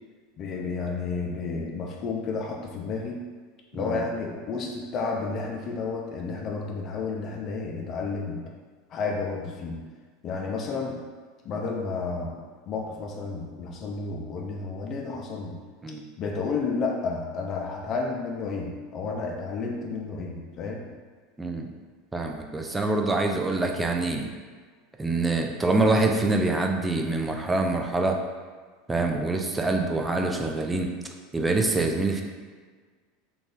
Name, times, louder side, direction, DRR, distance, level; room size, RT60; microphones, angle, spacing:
voice 1, 0.4-3.2 3.7-8.4 8.9-9.8 10.2-11.0 11.4-12.4 12.7-15.6 16.2-20.8, left 4 dB, 45° left, 1 dB, 0.5 m, -31 dB
voice 2, 21.4-21.7 22.1-24.3 25.0-28.2 28.9-30.9 31.3-32.2, right 2 dB, 15° right, 2 dB, 0.4 m, -25 dB
3.1 x 2.4 x 3.7 m, 1.5 s
hypercardioid pair, 95°, 0 cm